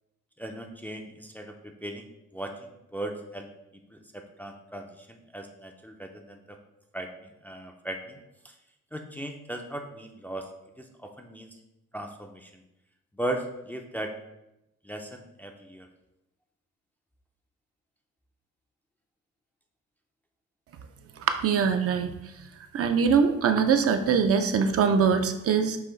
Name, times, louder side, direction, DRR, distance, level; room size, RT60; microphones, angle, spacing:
voice 1, 0.4-1.6 1.8-3.5 3.9-6.6 6.9-8.2 8.4-8.5 8.9-10.5 10.8-11.5 11.9-12.6 13.1-14.1 14.8-15.9, right 1 dB, 5° left, 3 dB, 0.4 m, -38 dB
voice 2, 21.4-22.1 22.7-25.8, right 6 dB, 50° right, 7 dB, 0.5 m, -22 dB
5.6 x 2.4 x 3.9 m, 0.89 s
cardioid pair, 90°, 30 cm